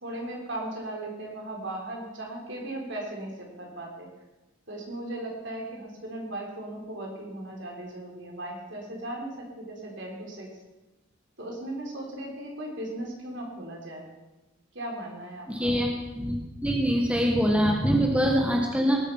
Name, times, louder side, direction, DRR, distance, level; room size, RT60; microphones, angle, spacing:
voice 1, 0.0-4.1 4.7-10.5 11.4-14.1 14.7-15.7, right 1 dB, 60° right, -1 dB, 4.0 m, -37 dB
voice 2, 15.5-15.9 16.2-19.0, equal, 5° right, 0 dB, 1.4 m, -24 dB
18.5 x 8.3 x 5.7 m, 1.1 s
head